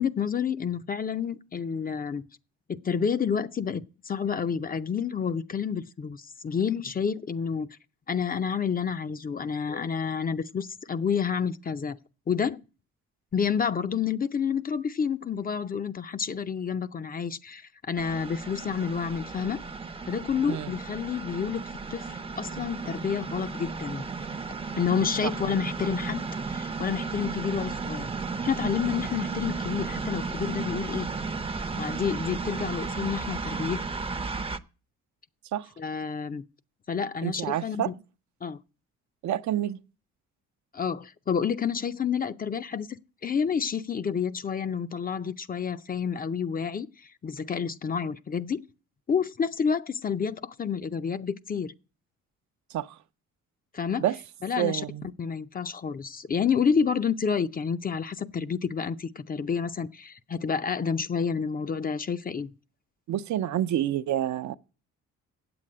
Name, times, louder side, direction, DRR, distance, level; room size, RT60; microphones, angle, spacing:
voice 1, 0.0-2.2 2.7-7.7 8.1-12.0 12.3-12.6 13.3-19.6 20.1-21.6 21.9-24.0 24.8-28.1 28.4-31.1 31.8-33.8 35.8-36.4 36.9-37.9 38.4-38.6 40.7-42.9 43.2-48.6 49.1-51.7 53.7-54.1 54.4-54.8 55.2-62.5, left 6 dB, 30° left, 0.5 m, -29 dB
sound 1, 18.0-34.6, right 4 dB, 20° right, 0.6 m, -34 dB
voice 2, 37.2-37.9 39.2-39.8 52.7-52.9 54.0-54.2 54.6-55.1 63.1-64.5, right 12 dB, 70° right, 0.6 m, -28 dB
8.3 x 7.8 x 8.6 m
cardioid pair, 90°, 30 cm